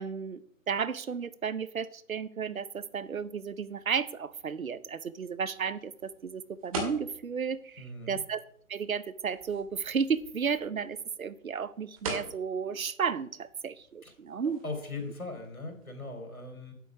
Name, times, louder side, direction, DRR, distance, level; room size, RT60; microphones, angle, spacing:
voice 1, 0.0-8.4 8.7-14.6, right 6 dB, 75° right, 16 dB, 0.8 m, -33 dB
sound 1, 2.6-15.9, right 2 dB, 25° right, 2.0 m, -45 dB
voice 2, 7.8-8.2 14.0-14.1 14.6-16.7, left 2 dB, 80° left, 4 dB, 3.5 m, -39 dB
8.3 x 8.0 x 5.9 m, 0.68 s
figure-of-eight pair, 145°, 42 cm